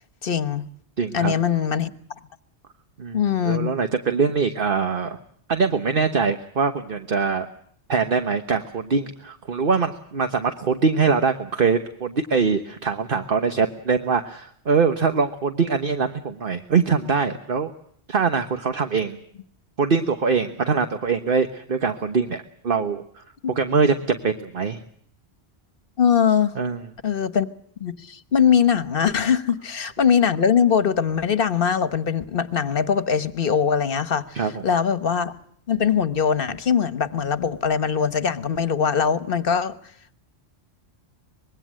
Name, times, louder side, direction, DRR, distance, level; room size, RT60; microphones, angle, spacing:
voice 1, 0.2-0.7 1.1-1.9 3.1-3.7 23.4-23.5 26.0-26.5 27.0-27.5 27.8-35.3 35.7-39.7, left 7 dB, 55° left, 13 dB, 1.3 m, -21 dB
voice 2, 1.0-1.3 3.0-5.2 5.5-7.5 7.9-17.7 18.1-19.2 19.8-23.2 23.5-24.8 26.6-26.8 34.3-34.6, right 5 dB, 55° right, 7 dB, 1.4 m, -23 dB
25.0 x 21.5 x 7.6 m, 0.65 s
omnidirectional pair, 1.1 m